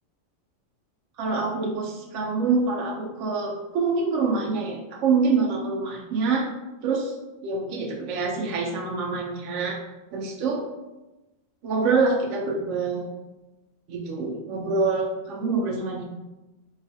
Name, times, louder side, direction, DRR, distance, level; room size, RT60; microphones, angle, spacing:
voice 1, 1.2-6.5 6.8-7.1 7.4-9.8 10.1-10.7 11.6-13.1 13.9-16.1, right 4 dB, 65° right, -1 dB, 0.9 m, -26 dB
3.8 x 2.4 x 2.7 m, 1.0 s
omnidirectional pair, 1.4 m